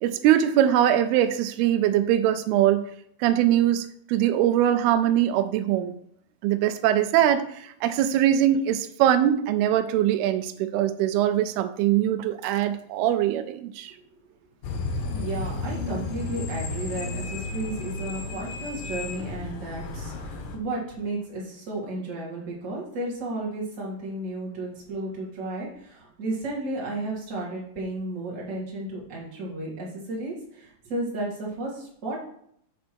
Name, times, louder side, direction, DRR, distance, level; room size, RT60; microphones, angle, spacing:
voice 1, 0.0-2.8 3.2-5.9 6.4-13.9, right 11 dB, 85° right, 10 dB, 2.6 m, -22 dB
sound 1, 14.6-20.6, left 3 dB, 70° left, 2.5 m, -33 dB
voice 2, 15.1-32.2, right 2 dB, 25° right, -4 dB, 2.0 m, -33 dB
7.4 x 4.1 x 6.2 m, 0.66 s
omnidirectional pair, 4.4 m